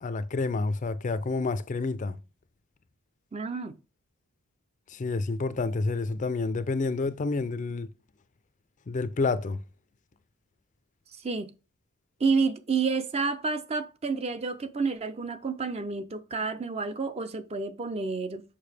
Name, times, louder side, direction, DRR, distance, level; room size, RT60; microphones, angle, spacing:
voice 1, 0.0-2.2 4.9-7.9 8.9-9.6, left 3 dB, 35° left, 0.4 m, -29 dB
voice 2, 3.3-3.7 11.2-11.5 12.2-18.4, right 4 dB, 30° right, 0.5 m, -29 dB
6.7 x 5.5 x 3.3 m
head